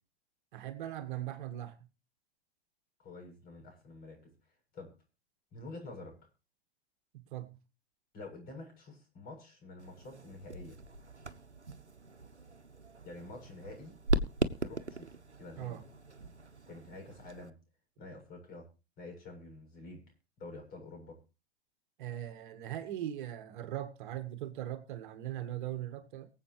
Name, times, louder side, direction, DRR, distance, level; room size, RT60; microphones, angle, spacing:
voice 1, 0.5-1.8 7.1-7.5 15.6-15.8 22.0-26.3, right 12 dB, 45° right, 8 dB, 1.7 m, -40 dB
voice 2, 3.0-4.3 4.7-4.9 5.5-6.2 8.1-10.8 13.0-14.0 14.6-15.8 16.7-17.5 18.0-18.7 19.0-20.0 20.4-21.2, left 2 dB, 25° left, 3 dB, 7.7 m, -48 dB
sound 1, 9.8-17.5, right 2 dB, 90° right, 1.1 m, -38 dB
23.5 x 8.0 x 3.1 m, 0.31 s
figure-of-eight pair, 105°, 33 cm